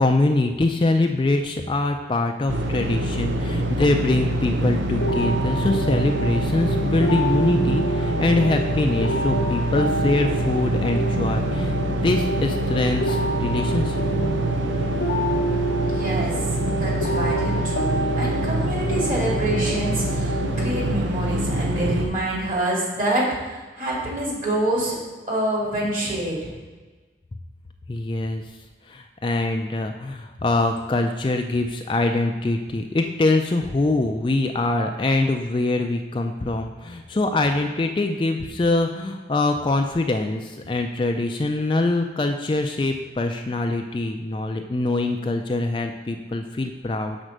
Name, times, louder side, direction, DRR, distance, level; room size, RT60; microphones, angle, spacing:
voice 1, 0.0-14.0 27.9-28.4 28.9-47.2, left 2 dB, 25° left, 5 dB, 0.3 m, -23 dB
sound 1, 2.5-22.1, right 1 dB, 85° right, 0.7 m, -25 dB
sound 2, 5.0-21.0, right 2 dB, 85° left, 0.7 m, -28 dB
voice 2, 15.8-16.4 16.8-25.0 25.3-26.5, right 1 dB, 45° right, -4 dB, 2.3 m, -26 dB
6.1 x 4.3 x 6.5 m, 1.3 s
head